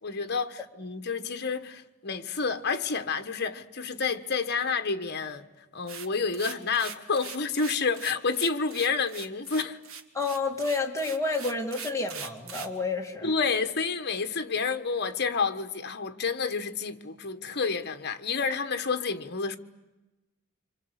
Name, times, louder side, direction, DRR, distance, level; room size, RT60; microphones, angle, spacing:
voice 1, 0.0-5.5 5.7-9.8 13.2-19.6, left 5 dB, 50° left, 1.4 m, -29 dB
sound 1, 5.9-12.8, right 6 dB, 70° right, 1.7 m, -41 dB
voice 2, 10.1-13.3, left 3 dB, 15° left, 2.4 m, -30 dB
27.5 x 25.5 x 8.2 m
head